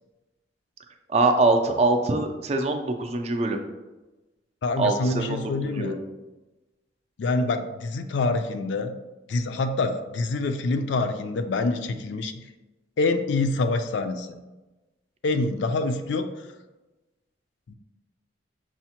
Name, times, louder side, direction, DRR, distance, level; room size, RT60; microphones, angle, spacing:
voice 1, 1.1-3.6 4.8-6.0, right 2 dB, 35° right, 5 dB, 0.3 m, -23 dB
voice 2, 4.6-6.0 7.2-8.9 9.3-12.3 13.0-14.4 15.2-16.3 17.7-17.8, left 3 dB, 75° left, 7 dB, 0.4 m, -26 dB
6.1 x 2.1 x 2.8 m, 1.1 s
head